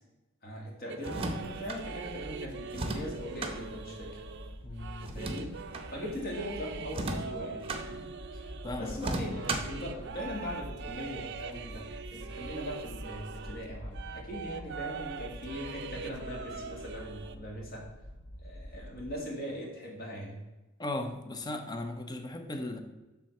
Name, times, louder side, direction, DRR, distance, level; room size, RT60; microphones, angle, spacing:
voice 1, 0.4-4.2 5.1-5.5 5.9-8.1 8.3-17.8 18.4-20.4, equal, 45° left, -2 dB, 2.1 m, -40 dB
sound 1, 0.9-13.7 13.9-17.4, right 5 dB, 55° right, 0.5 m, -43 dB
sound 2, 1.0-1.8 2.7-3.6 5.0-5.9 6.9-7.8 9.0-9.8, right 2 dB, 25° right, 0.8 m, -35 dB
sound 3, 1.1-19.1, equal, 65° left, 0.9 m, -46 dB
voice 2, 4.6-5.1 8.6-9.1 20.8-22.8, left 2 dB, 20° left, 6 dB, 0.7 m, -37 dB
7.4 x 3.7 x 6.5 m, 1.1 s
head